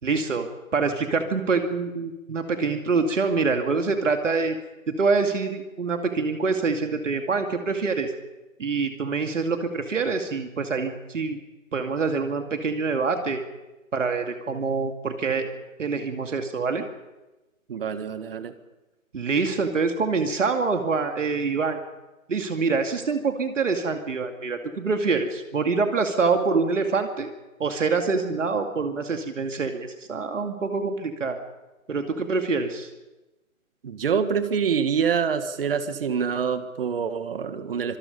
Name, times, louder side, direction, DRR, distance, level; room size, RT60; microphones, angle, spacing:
voice 1, 0.0-4.6 4.9-8.1 8.6-11.4 11.7-13.4 13.9-15.5 15.8-16.9 19.1-21.8 22.3-27.3 27.6-31.4 31.9-32.9, right 4 dB, 60° right, 5 dB, 2.5 m, -25 dB
voice 2, 17.7-18.5 33.8-38.0, right 6 dB, 45° right, 11 dB, 1.7 m, -26 dB
25.5 x 23.5 x 5.4 m, 1.1 s
hypercardioid pair, 160°, 41 cm